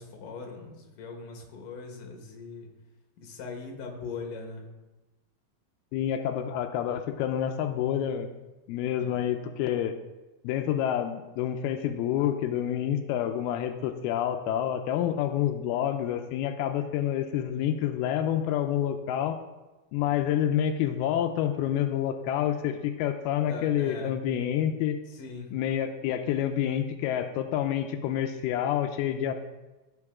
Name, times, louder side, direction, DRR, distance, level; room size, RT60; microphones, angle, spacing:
voice 1, 0.0-2.7 3.2-4.7 9.0-9.1 22.7-22.8 23.4-24.2 25.1-25.5, left 4 dB, 65° left, 2 dB, 2.9 m, -41 dB
voice 2, 5.9-8.3 8.7-10.0 10.4-19.4 19.9-25.0 25.5-29.3, left 10 dB, 90° left, 6 dB, 2.5 m, -28 dB
15.5 x 5.9 x 3.6 m, 1.1 s
omnidirectional pair, 4.4 m